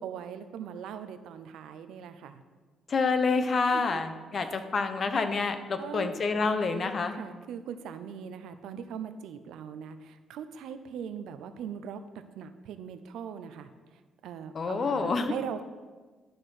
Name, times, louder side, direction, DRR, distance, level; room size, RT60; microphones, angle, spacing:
voice 1, 0.0-2.4 3.7-4.0 4.3-4.6 5.8-6.1 7.1-12.0 12.4-15.6, right 8 dB, 85° right, 10 dB, 0.6 m, -40 dB
voice 2, 2.9-7.2 14.5-15.3, left 4 dB, 45° left, 8 dB, 0.8 m, -28 dB
12.0 x 4.4 x 4.9 m, 1.3 s
cardioid pair, 90°, 0 cm